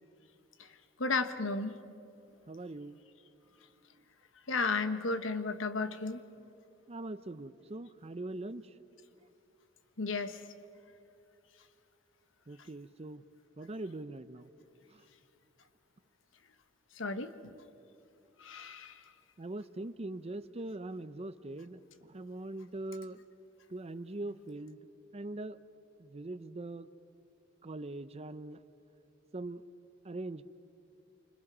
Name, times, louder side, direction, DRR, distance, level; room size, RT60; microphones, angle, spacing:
voice 1, 1.0-1.8 4.5-6.2 10.0-10.4 17.0-17.3 18.4-18.9, left 3 dB, 85° left, 10 dB, 1.2 m, -33 dB
voice 2, 2.5-3.0 6.9-8.7 12.5-13.2 13.6-14.5 14.9-15.0 19.4-23.2 23.7-24.8 25.1-25.6 26.0-26.9 27.6-28.6 29.3-29.6 30.0-30.4, right 2 dB, 35° right, 14 dB, 0.7 m, -42 dB
28.0 x 26.0 x 6.1 m, 2.7 s
head